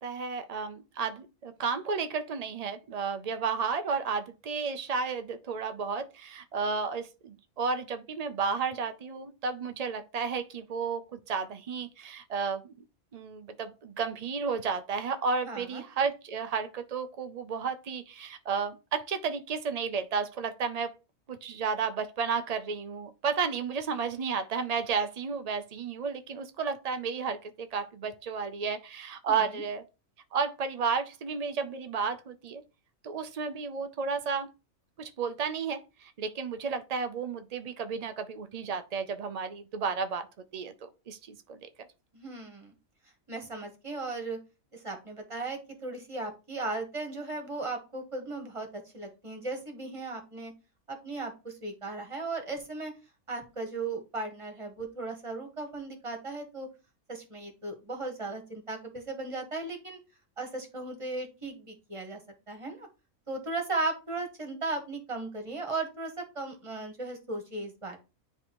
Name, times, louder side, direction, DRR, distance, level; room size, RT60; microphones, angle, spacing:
voice 1, 0.0-12.6 13.1-20.9 21.3-29.8 30.3-32.6 33.0-34.5 35.0-40.3 40.5-41.7, right 5 dB, 90° right, 0.3 m, -32 dB
voice 2, 15.4-15.8 29.3-29.4 42.1-42.7 43.3-44.4 44.7-50.5 50.9-52.9 53.3-56.7 57.1-60.0 60.4-62.2 62.5-62.9 63.3-68.0, right 3 dB, 25° right, 1.4 m, -36 dB
9.8 x 3.3 x 3.0 m
omnidirectional pair, 1.5 m